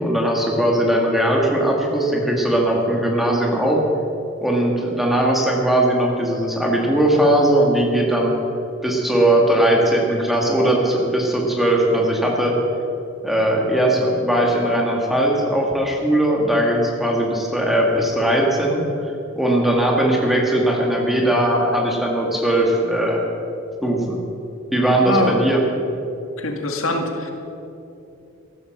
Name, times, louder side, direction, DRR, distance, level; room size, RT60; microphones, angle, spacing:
voice 1, 0.0-3.8 4.4-8.3 8.8-12.5 13.2-23.2 23.8-24.2 24.7-25.6, right 1 dB, ahead, -1 dB, 2.2 m, -19 dB
voice 2, 24.9-25.4 26.4-27.3, left 2 dB, 80° left, 3 dB, 2.0 m, -23 dB
15.0 x 12.5 x 6.7 m, 2.8 s
head